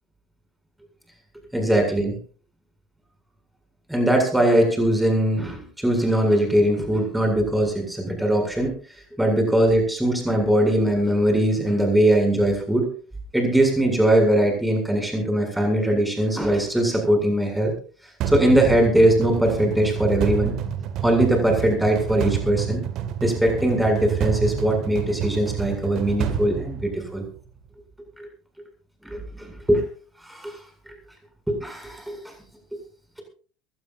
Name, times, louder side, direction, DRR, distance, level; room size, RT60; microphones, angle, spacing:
voice 1, 1.5-2.1 3.9-8.7 9.2-12.9 13.3-17.7 18.3-20.5 21.0-22.8 23.2-27.2 28.2-28.3 29.0-29.8 30.3-30.6 31.5-32.3, right 1 dB, 5° right, 4 dB, 7.8 m, -21 dB
sound 1, 18.2-27.4, right 9 dB, 45° right, 2.2 m, -28 dB
23.0 x 18.0 x 2.8 m, 0.40 s
figure-of-eight pair, 70°, 0 cm